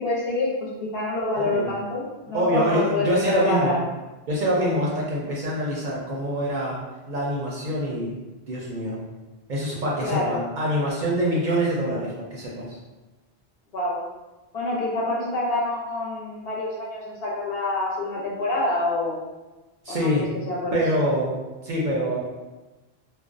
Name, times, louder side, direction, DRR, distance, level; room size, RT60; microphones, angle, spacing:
voice 1, 0.0-3.8 10.0-10.3 13.7-14.0 14.5-19.2 19.9-21.0, left 2 dB, 65° left, -4 dB, 0.8 m, -27 dB
voice 2, 1.4-1.7 2.3-3.8 4.3-6.8 7.1-8.1 8.4-9.0 9.5-12.8 19.8-20.2 20.7-21.4 21.6-22.2, equal, 55° right, -4 dB, 0.6 m, -25 dB
2.4 x 2.0 x 2.5 m, 1.1 s
omnidirectional pair, 1.1 m